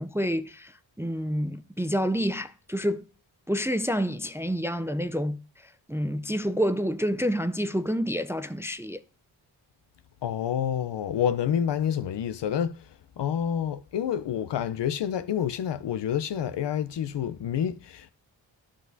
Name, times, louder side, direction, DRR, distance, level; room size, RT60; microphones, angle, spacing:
voice 1, 0.0-3.0 3.5-9.0, equal, 5° right, 0.4 m, -28 dB
voice 2, 10.2-12.9 13.2-18.1, left 9 dB, 65° left, 0.7 m, -28 dB
12.0 x 6.2 x 2.6 m
cardioid pair, 45°, 47 cm